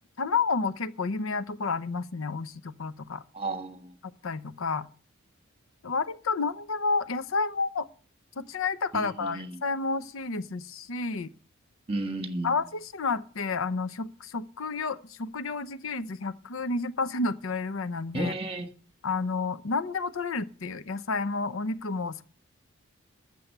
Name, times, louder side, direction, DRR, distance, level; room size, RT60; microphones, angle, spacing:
voice 1, 0.2-3.2 4.2-4.9 5.8-7.9 8.4-11.3 12.4-18.3 19.0-22.2, left 4 dB, 70° left, 0.7 m, -30 dB
voice 2, 3.3-3.9 8.9-9.6 11.9-12.6 18.1-18.7, right 2 dB, 30° right, 1.6 m, -33 dB
14.0 x 6.9 x 6.7 m
head